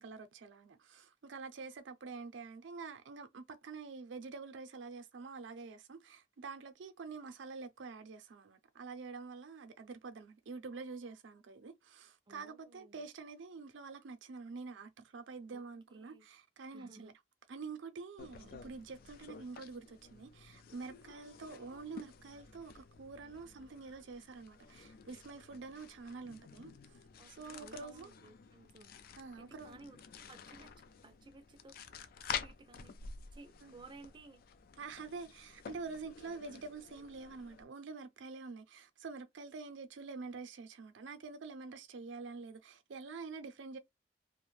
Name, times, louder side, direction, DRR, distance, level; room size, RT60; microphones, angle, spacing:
voice 1, 0.0-17.1 17.5-26.7 27.4-28.1 29.2-29.9 33.6-33.8 34.8-43.8, right 4 dB, 85° right, 0.5 m, -47 dB
voice 2, 12.3-13.1 15.5-15.6 15.9-16.3 16.7-17.1 27.2-28.9 29.4-31.8 32.4-33.0 33.3-34.4, right 3 dB, 25° right, 0.4 m, -57 dB
sound 1, 18.2-37.6, left 6 dB, 55° left, 0.3 m, -50 dB
2.4 x 2.1 x 3.1 m
head